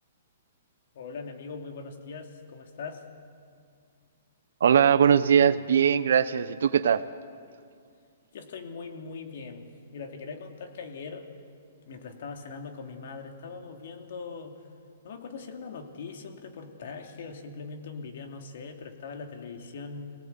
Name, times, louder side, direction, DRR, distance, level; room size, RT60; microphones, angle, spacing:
voice 1, 0.9-3.0 8.3-9.7 9.9-11.3 11.8-14.6 15.0-20.1, left 4 dB, 65° left, 4 dB, 2.7 m, -41 dB
voice 2, 4.6-7.0, right 8 dB, 75° right, 12 dB, 0.8 m, -21 dB
24.5 x 18.0 x 8.2 m, 2.2 s
hypercardioid pair, 145°, 0 cm